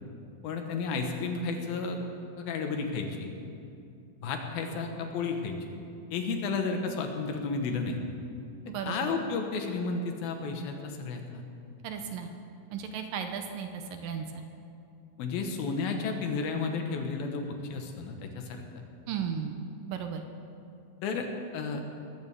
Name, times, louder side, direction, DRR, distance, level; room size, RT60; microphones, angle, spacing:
voice 1, 0.4-2.0 2.4-3.4 4.2-5.6 6.1-8.0 8.9-11.4 15.2-18.6 21.0-21.3 21.5-21.8, left 4 dB, 80° left, 4 dB, 3.0 m, -32 dB
voice 2, 8.7-9.1 11.8-12.3 12.7-14.2 19.1-19.6 19.9-20.2, right 7 dB, 75° right, 5 dB, 2.3 m, -35 dB
20.5 x 15.5 x 3.5 m, 2.6 s
omnidirectional pair, 4.3 m